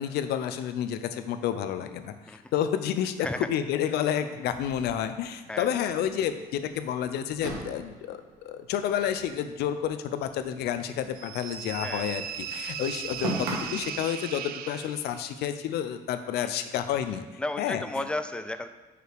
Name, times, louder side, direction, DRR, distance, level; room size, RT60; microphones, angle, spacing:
voice 1, 0.0-18.0, left 9 dB, 75° left, 10 dB, 0.5 m, -30 dB
sound 1, 4.5-5.8 6.2-6.3 6.6-6.7 7.4-9.9 10.1-12.0 12.2-14.0, right 2 dB, 85° right, 1.3 m, -38 dB
sound 2, 11.2-15.3, right 9 dB, 60° right, 0.4 m, -37 dB
voice 2, 17.4-18.7, left 2 dB, 5° left, 10 dB, 0.3 m, -33 dB
4.9 x 4.9 x 4.8 m, 1.2 s
cardioid pair, 110°, 17 cm